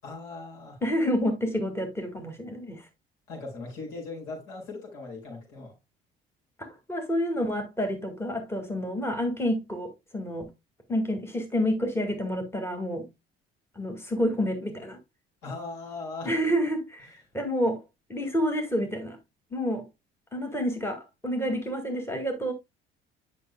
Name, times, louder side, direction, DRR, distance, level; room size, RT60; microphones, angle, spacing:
voice 1, 0.0-0.8 3.3-5.8 15.4-16.4, left 3 dB, 65° left, 4.9 m, -39 dB
voice 2, 0.8-2.9 6.6-10.5 10.9-13.1 13.8-15.0 16.3-17.8 18.1-19.2 19.5-19.9 20.3-22.5, equal, 10° left, 2.1 m, -29 dB
11.0 x 6.1 x 2.2 m
figure-of-eight pair, 55°, 30 cm